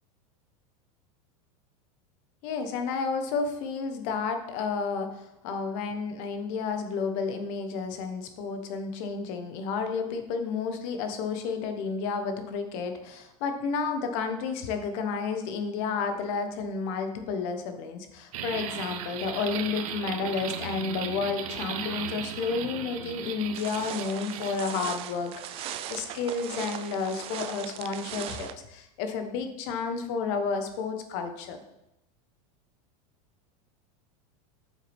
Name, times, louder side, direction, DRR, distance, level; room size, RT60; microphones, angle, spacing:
voice 1, 2.4-31.6, left 5 dB, 55° left, 6 dB, 1.1 m, -31 dB
sound 1, 18.3-24.6, right 9 dB, 75° right, 0.8 m, -36 dB
sound 2, 23.5-28.5, right 11 dB, 35° right, 0.4 m, -38 dB
8.0 x 6.4 x 3.5 m, 0.88 s
supercardioid pair, 155°, 18 cm